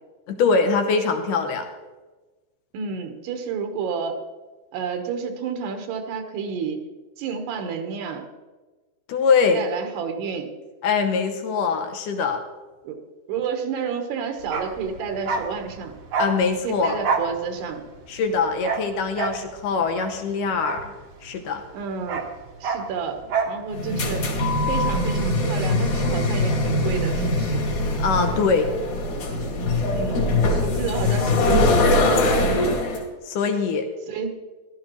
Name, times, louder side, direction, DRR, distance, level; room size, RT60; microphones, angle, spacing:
voice 1, 0.3-1.7 9.1-9.6 10.8-12.4 16.2-17.0 18.1-20.9 21.2-21.6 28.0-28.7 33.3-33.9, left 5 dB, 75° left, 6 dB, 2.0 m, -22 dB
voice 2, 2.7-4.2 4.7-6.9 7.2-8.3 9.5-10.5 12.8-13.0 13.3-15.9 16.6-17.8 21.7-22.2 22.6-23.2 23.5-27.7 29.9-32.1 34.1-34.3, right 6 dB, 85° right, 5 dB, 3.2 m, -30 dB
Bark, 14.4-21.4 21.7-23.6 23.9-24.0, right 5 dB, 65° right, 1.7 m, -29 dB
sound 1, 23.7-33.0, left 2 dB, 55° left, 3.6 m, -22 dB
16.0 x 12.5 x 3.1 m, 1.2 s
omnidirectional pair, 4.6 m